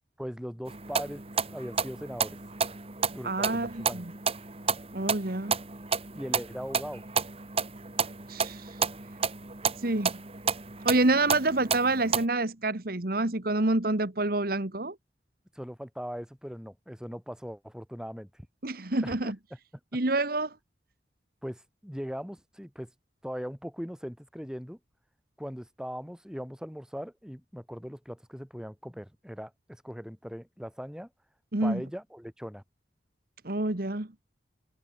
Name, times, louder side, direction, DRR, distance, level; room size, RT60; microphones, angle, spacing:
voice 1, 0.2-1.2 1.5-2.4 3.1-4.0 6.1-7.0 15.5-18.3 19.0-19.3 21.4-22.9 23.2-24.8 25.4-31.1 31.6-32.6, equal, 5° right, 6.7 m, -39 dB
sound 1, 0.7-12.2, right 5 dB, 35° right, 2.2 m, -31 dB
voice 2, 3.2-4.0 4.9-5.6 8.3-8.7 9.8-10.1 10.8-14.9 18.6-19.3 19.9-20.5 31.5-31.8 33.4-34.1, right 2 dB, 55° right, 1.6 m, -27 dB
head